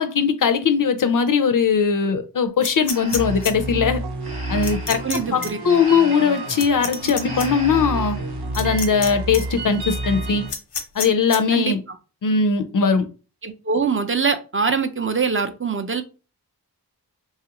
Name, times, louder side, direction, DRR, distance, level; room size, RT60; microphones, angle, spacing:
voice 1, 0.0-4.0 4.5-5.0 5.3-8.2 8.5-10.4 11.0-11.8 12.2-13.1, left 5 dB, 55° left, 0.4 m, -20 dB
sound 1, 2.6-3.5 4.6-5.2 5.4-5.5 6.6-7.5 8.5-9.1 9.3-9.4 10.5-11.4, left 5 dB, 90° left, 0.7 m, -28 dB
Breathing, 2.9-8.4, equal, 15° right, 0.8 m, -39 dB
sound 2, 3.1-10.5, right 2 dB, 75° right, 0.7 m, -30 dB
voice 2, 5.0-5.6 11.5-12.0 13.4-16.0, right 5 dB, 35° right, 0.4 m, -23 dB
3.1 x 2.4 x 2.9 m
wide cardioid pair, 65°, 40 cm